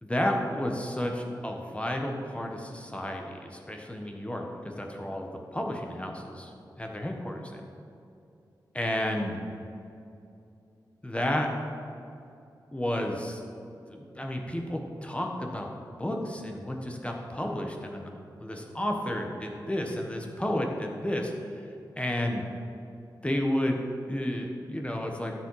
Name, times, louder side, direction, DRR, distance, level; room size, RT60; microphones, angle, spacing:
voice 1, 0.0-6.5 6.8-7.6 8.7-9.4 11.0-11.5 12.7-13.4 13.9-15.7 16.0-18.1 18.4-21.3 22.0-22.4 23.2-23.8 24.1-25.3, left 1 dB, 15° left, 1 dB, 1.4 m, -31 dB
12.5 x 7.4 x 4.9 m, 2.7 s
wide cardioid pair, 70°, 8 cm